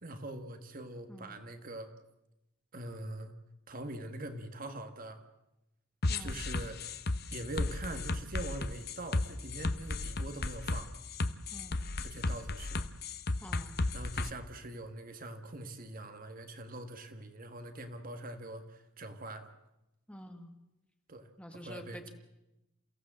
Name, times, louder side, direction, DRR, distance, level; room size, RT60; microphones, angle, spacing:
voice 1, 0.0-1.9 2.7-3.4 3.7-5.2 6.2-6.8 7.3-10.9 12.0-12.8 13.9-19.5 21.1-22.1, right 1 dB, 40° right, 7 dB, 1.7 m, -43 dB
sound 1, 6.0-14.3, left 2 dB, 50° left, 1.0 m, -34 dB
voice 2, 11.5-11.8 13.4-13.8 20.1-20.5 21.4-22.1, equal, 5° left, 5 dB, 1.8 m, -48 dB
28.5 x 16.0 x 7.6 m, 0.94 s
head